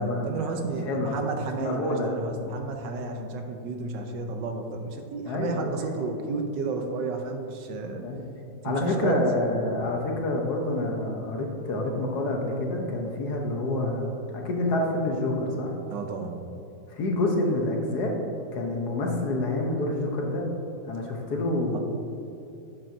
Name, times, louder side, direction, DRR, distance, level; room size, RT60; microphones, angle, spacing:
voice 1, 0.0-8.0 8.6-9.2 15.9-16.5 21.7-21.8, right 4 dB, 80° right, 4 dB, 1.4 m, -32 dB
voice 2, 0.9-1.2 1.6-2.1 5.3-5.7 8.0-8.2 8.6-15.7 17.0-18.1 18.5-20.5 20.8-21.8, left 2 dB, 65° left, 1 dB, 1.5 m, -27 dB
10.0 x 7.6 x 2.7 m, 2.7 s
omnidirectional pair, 2.0 m